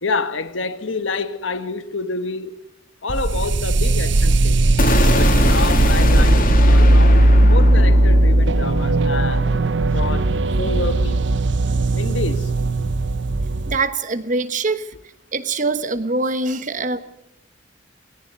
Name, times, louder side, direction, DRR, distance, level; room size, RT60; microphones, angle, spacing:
voice 1, 0.0-2.6 3.0-4.5 5.1-9.5 9.9-10.3 10.6-11.3 11.9-12.5, left 3 dB, 85° left, 1.5 m, -28 dB
sound 1, 3.1-13.8, right 1 dB, 65° right, 0.8 m, -17 dB
sound 2, 4.8-10.8, left 2 dB, 50° left, 2.9 m, -23 dB
voice 2, 13.7-14.9 15.3-17.0, right 3 dB, 40° right, 1.3 m, -23 dB
21.0 x 17.5 x 8.1 m
head